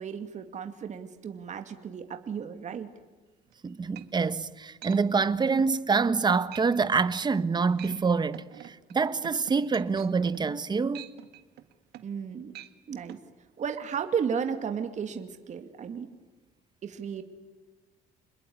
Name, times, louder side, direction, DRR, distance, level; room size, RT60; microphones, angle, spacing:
voice 1, 0.0-2.9 12.0-12.5 12.9-13.2 13.6-16.1 16.8-17.2, right 7 dB, 45° right, 2.4 m, -34 dB
sound 1, 3.5-3.6 4.0-4.4 4.8-5.0 5.4-5.7 6.1-6.2 6.5-6.7 6.9-7.2 7.6-8.0 8.3-12.2 12.5-12.7 13.1-13.2, right 13 dB, 75° right, 1.9 m, -46 dB
voice 2, 3.6-11.0, right 5 dB, 25° right, 1.3 m, -26 dB
28.0 x 21.5 x 9.6 m
cardioid pair, 110°, 17 cm